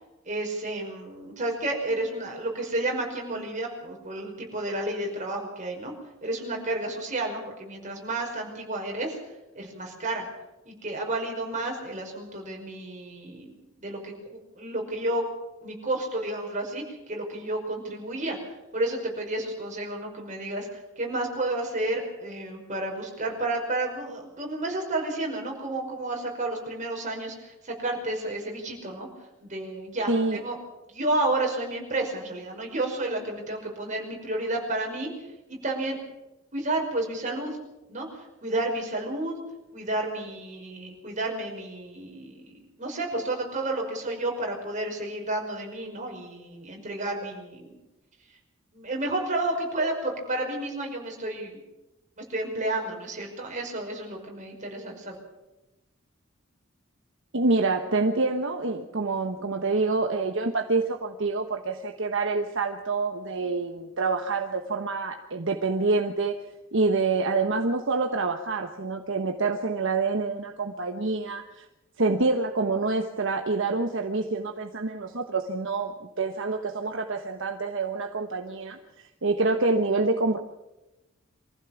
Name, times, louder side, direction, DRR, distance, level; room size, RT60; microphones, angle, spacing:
voice 1, 0.3-5.9 6.2-9.2 9.5-10.3 10.7-15.2 15.6-18.4 18.7-29.1 29.4-30.6 30.9-35.1 35.5-36.0 36.5-37.6 37.9-39.4 39.7-47.8 48.7-51.6 52.2-55.2, right 2 dB, 40° right, 1 dB, 5.4 m, -31 dB
voice 2, 30.1-30.4 57.3-66.4 66.7-71.6 72.0-75.9 76.2-80.4, right 3 dB, 65° right, 4 dB, 1.2 m, -27 dB
24.0 x 15.5 x 7.2 m, 0.99 s
head